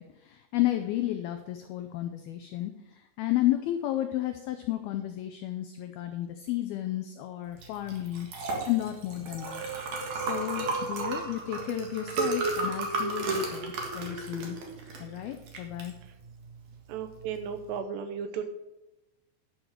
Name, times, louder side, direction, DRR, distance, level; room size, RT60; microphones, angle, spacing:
voice 1, 0.0-8.3 8.7-9.6 10.1-14.6 15.0-16.0, left 14 dB, 85° left, 7 dB, 2.1 m, -32 dB
Liquid, 7.5-17.7, right 3 dB, 50° right, 2.3 m, -34 dB
voice 2, 16.9-18.5, right 7 dB, 75° right, 8 dB, 2.8 m, -35 dB
11.0 x 6.2 x 6.4 m, 0.98 s
omnidirectional pair, 5.2 m